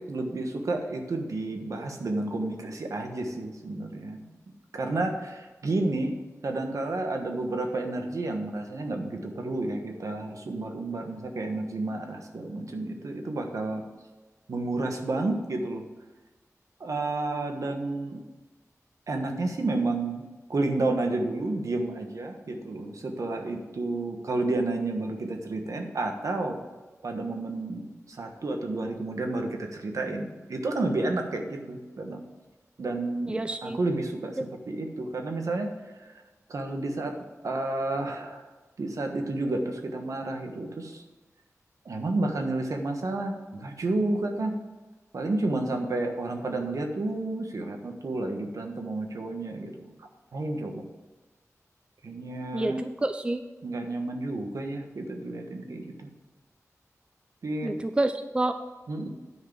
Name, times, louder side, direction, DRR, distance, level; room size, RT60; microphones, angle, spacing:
voice 1, 0.0-4.3 4.7-6.1 6.4-13.8 14.5-15.8 16.8-18.2 19.1-20.2 20.5-26.6 27.0-32.2 32.8-34.4 34.7-35.7 36.0-36.1 36.5-37.2 37.4-38.4 38.8-41.0 41.8-44.5 45.1-49.9 50.3-50.8 52.0-52.8 53.6-56.1 57.4-57.7 58.9-59.1, right 2 dB, 70° right, 4 dB, 1.3 m, -31 dB
voice 2, 33.3-33.8 34.4-34.5 52.5-53.4 57.6-58.6, right 2 dB, 15° right, 9 dB, 0.4 m, -28 dB
9.8 x 4.9 x 7.3 m, 1.2 s
wide cardioid pair, 105°, 6 cm